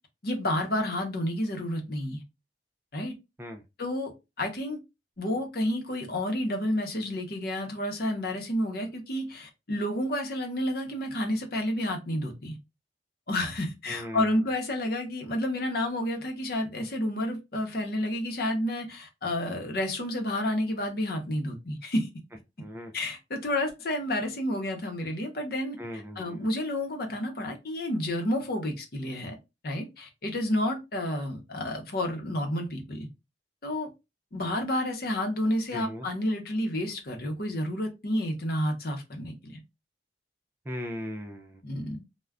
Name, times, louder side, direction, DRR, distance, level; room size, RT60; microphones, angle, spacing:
voice 1, 0.2-2.2 2.9-3.1 3.8-4.1 4.4-4.8 5.2-12.6 13.3-22.1 22.9-25.8 26.2-29.3 29.6-33.1 33.6-33.9 34.3-39.6 41.6-42.0, left 1 dB, 60° left, 0.8 m, -30 dB
voice 2, 13.9-14.4 22.6-22.9 25.8-26.5 35.7-36.1 40.7-41.6, left 1 dB, 10° right, 0.3 m, -38 dB
2.3 x 2.1 x 3.4 m
head